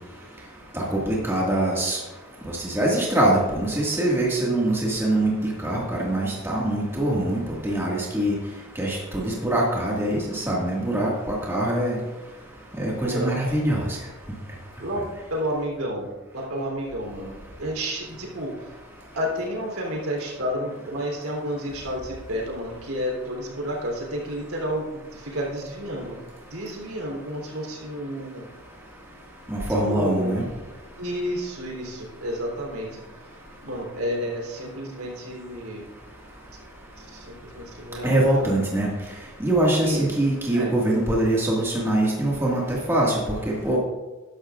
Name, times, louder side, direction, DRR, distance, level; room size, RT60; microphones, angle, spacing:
voice 1, 0.7-2.0 2.5-5.3 5.6-8.3 8.8-12.0 12.8-13.9 29.5-30.4 38.0-38.9 39.4-43.1 43.5-43.8, right 1 dB, 10° right, -4 dB, 1.9 m, -23 dB
voice 2, 13.0-13.3 14.8-18.7 19.1-26.2 26.4-28.5 29.7-30.4 31.0-33.0 33.6-35.8 37.0-38.6 39.8-40.1 40.5-40.7, equal, 80° right, -1 dB, 3.4 m, -31 dB
13.5 x 11.5 x 2.5 m, 1.2 s
head